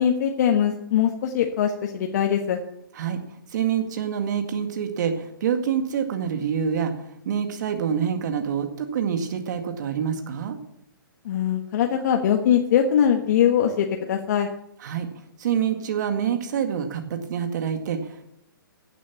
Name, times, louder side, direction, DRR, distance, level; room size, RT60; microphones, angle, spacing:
voice 1, 0.0-2.6 11.2-14.5, left 9 dB, 50° left, 3 dB, 1.4 m, -22 dB
voice 2, 3.5-10.6 14.8-15.1 15.4-18.3, right 8 dB, 55° right, 6 dB, 2.0 m, -26 dB
16.0 x 7.4 x 7.0 m, 0.78 s
hypercardioid pair, 130°, 12 cm